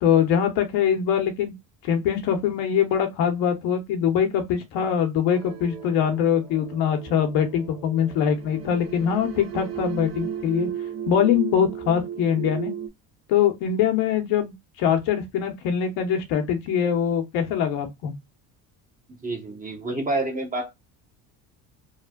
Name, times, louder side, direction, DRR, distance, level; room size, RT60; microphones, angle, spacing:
voice 1, 0.0-1.5 1.8-10.7 11.1-12.7 13.3-18.1, left 8 dB, 80° left, 1.0 m, -23 dB
sound 1, 5.3-12.9, right 8 dB, 65° right, 1.0 m, -35 dB
voice 2, 19.1-20.7, right 2 dB, 20° right, 1.0 m, -28 dB
3.2 x 2.4 x 2.3 m
cardioid pair, 105°, 38 cm